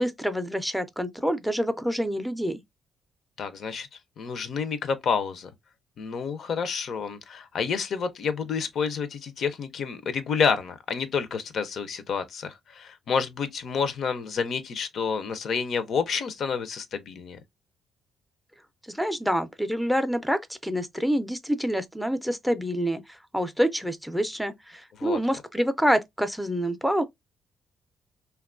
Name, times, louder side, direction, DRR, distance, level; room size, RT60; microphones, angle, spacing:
voice 1, 0.0-2.6 18.9-27.0, equal, ahead, 0.4 m, -27 dB
voice 2, 3.4-3.9 4.2-5.5 6.0-17.4 25.0-25.2, left 6 dB, 60° left, 0.4 m, -29 dB
2.9 x 2.2 x 2.3 m
cardioid pair, 90°, 0 cm